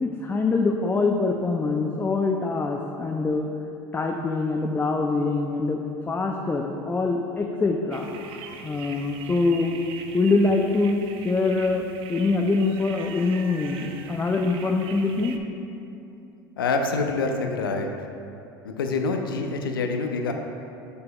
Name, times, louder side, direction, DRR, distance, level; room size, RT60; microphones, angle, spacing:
voice 1, 0.0-3.5 3.9-5.8 6.1-8.1 8.6-9.7 10.1-11.8 12.1-15.4, left 3 dB, 15° left, 2 dB, 0.4 m, -24 dB
sound 1, 7.9-15.4, right 6 dB, 55° right, 0.5 m, -42 dB
voice 2, 16.6-17.9 18.6-20.3, left 3 dB, 85° left, 4 dB, 0.5 m, -26 dB
6.8 x 6.8 x 2.3 m, 2.8 s
hypercardioid pair, 75°, 11 cm